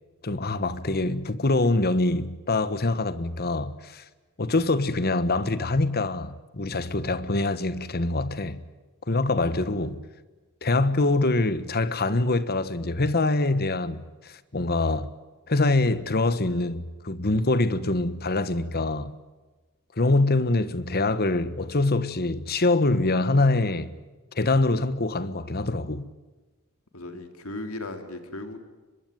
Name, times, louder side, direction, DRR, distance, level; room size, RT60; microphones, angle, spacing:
voice 1, 0.2-4.0 4.4-8.6 9.1-10.0 10.6-15.1 15.5-19.1 20.0-23.9 24.3-26.0, left 2 dB, 45° left, 1.4 m, -24 dB
voice 2, 26.9-28.6, left 2 dB, 65° left, 3.5 m, -36 dB
24.5 x 22.0 x 9.4 m
head